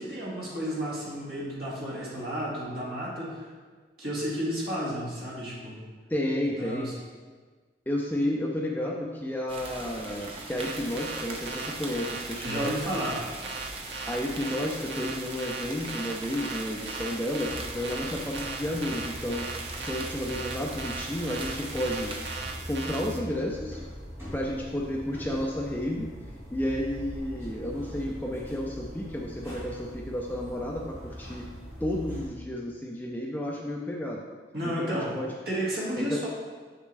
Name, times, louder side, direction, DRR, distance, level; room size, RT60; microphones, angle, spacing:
voice 1, 0.0-3.5 4.0-5.8 6.6-6.9 12.4-13.2 34.5-35.2 35.5-36.3, equal, 55° right, -5 dB, 1.9 m, -32 dB
voice 2, 6.1-6.9 7.9-12.7 14.1-19.5 19.8-22.1 22.7-23.8 24.3-26.1 26.5-31.4 31.8-34.3 34.6-35.3 36.0-36.2, left 1 dB, 10° left, -1 dB, 0.5 m, -31 dB
sound 1, 9.5-22.4, right 2 dB, 30° right, 0.7 m, -41 dB
sound 2, 10.6-23.2, right 4 dB, 70° right, 0.8 m, -39 dB
sound 3, 17.4-32.2, equal, 15° right, 2.0 m, -42 dB
6.7 x 6.3 x 3.3 m, 1.4 s
head